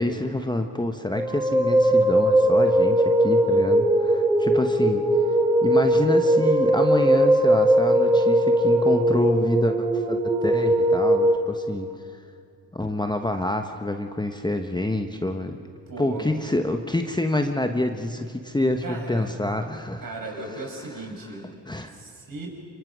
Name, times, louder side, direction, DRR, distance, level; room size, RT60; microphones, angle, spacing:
voice 1, 0.0-5.1 5.6-11.9 12.7-15.6 16.0-20.0 21.7-22.0, left 1 dB, 10° left, 6 dB, 1.2 m, -27 dB
sound 1, 1.1-11.4, right 1 dB, 5° right, 3.7 m, -20 dB
voice 2, 15.9-16.4 18.8-19.4 20.0-21.5 21.9-22.5, right 2 dB, 55° right, 0 dB, 6.1 m, -36 dB
24.0 x 23.5 x 6.3 m, 2.4 s
supercardioid pair, 55°, 42 cm